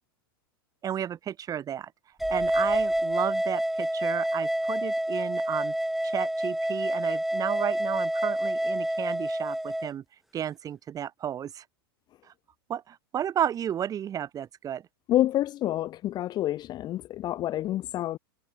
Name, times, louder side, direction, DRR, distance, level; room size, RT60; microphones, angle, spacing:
voice 1, 0.8-1.9 2.3-5.7 6.0-10.0 10.3-11.6 12.7-14.8, right 9 dB, 30° right, 5.5 m, -32 dB
sound 1, 2.2-9.9, right 1 dB, ahead, 1.0 m, -28 dB
voice 2, 15.1-18.2, left 13 dB, 35° left, 1.1 m, -28 dB
hypercardioid pair, 120°, 13 cm